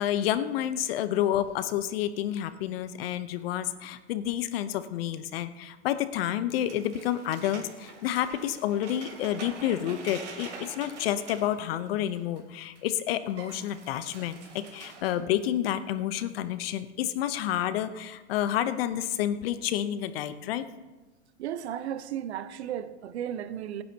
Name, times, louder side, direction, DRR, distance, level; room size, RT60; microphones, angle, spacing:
voice 1, 0.0-14.4 14.7-20.6, left 11 dB, 55° left, 0.9 m, -29 dB
sound 1, 6.5-12.4 12.8-12.9 13.1-15.1, right 4 dB, 90° right, 3.2 m, -45 dB
voice 2, 21.4-23.8, right 10 dB, 70° right, 1.0 m, -34 dB
24.5 x 10.0 x 2.9 m
hypercardioid pair, 125°, 34 cm